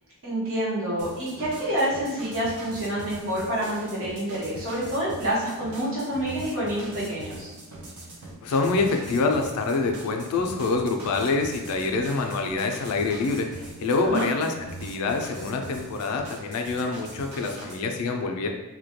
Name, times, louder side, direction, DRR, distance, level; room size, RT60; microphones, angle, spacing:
voice 1, 0.2-7.5 14.0-14.3, right 1 dB, 70° right, -8 dB, 1.0 m, -28 dB
sound 1, 1.0-17.8, right 2 dB, 85° right, 0.5 m, -42 dB
voice 2, 8.4-14.5 14.8-18.5, left 3 dB, 80° left, 4 dB, 0.3 m, -26 dB
2.2 x 2.1 x 2.8 m, 1.1 s
head